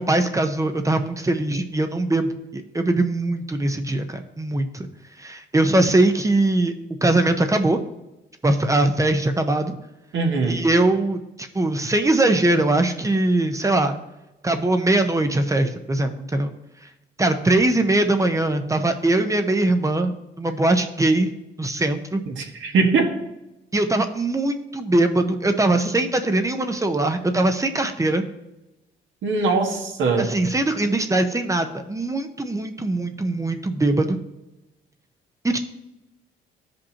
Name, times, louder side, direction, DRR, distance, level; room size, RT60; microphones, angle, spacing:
voice 1, 0.0-4.9 5.2-6.7 7.0-7.8 8.4-9.8 10.5-14.0 14.4-16.5 17.2-21.3 21.6-22.2 23.7-28.3 30.2-34.2 35.4-35.6, right 2 dB, 15° right, 7 dB, 0.8 m, -21 dB
voice 2, 10.1-10.6 22.3-23.1 29.2-30.3, right 4 dB, 75° right, 1 dB, 1.6 m, -21 dB
13.5 x 5.2 x 2.9 m, 0.96 s
cardioid pair, 90°, 20 cm